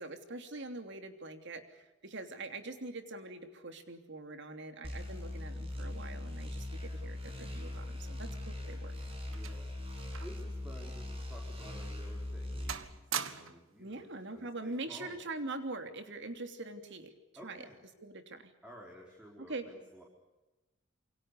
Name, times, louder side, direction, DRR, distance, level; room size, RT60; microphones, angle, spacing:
voice 1, 0.0-8.9 13.8-17.1 17.4-17.7 18.0-18.5 19.4-19.7, right 2 dB, 65° right, 7 dB, 3.1 m, -43 dB
sound 1, 4.8-12.7, left 1 dB, 30° right, 6.9 m, -40 dB
sound 2, 8.6-10.5 10.8-11.0 11.6-11.7 12.2-12.4 12.7-13.7 14.7-15.0, right 8 dB, 85° right, 1.6 m, -42 dB
voice 2, 9.3-15.2 17.4-17.8 18.6-20.0, equal, 5° right, -2 dB, 4.6 m, -53 dB
28.0 x 24.0 x 6.8 m, 1.1 s
head